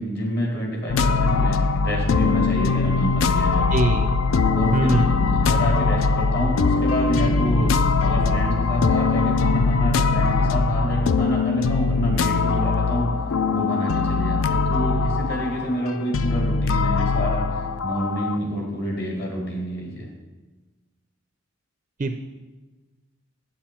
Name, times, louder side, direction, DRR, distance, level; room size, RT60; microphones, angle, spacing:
voice 1, 0.0-3.7 4.5-13.1 13.5-20.1, equal, 50° left, 0 dB, 1.9 m, -27 dB
sound 1, 0.9-18.4, left 4 dB, 65° left, 0.4 m, -21 dB
voice 2, 3.7-4.1 4.7-5.1 22.0-22.2, right 2 dB, 35° right, 7 dB, 0.4 m, -23 dB
8.7 x 7.4 x 4.4 m, 1.2 s
head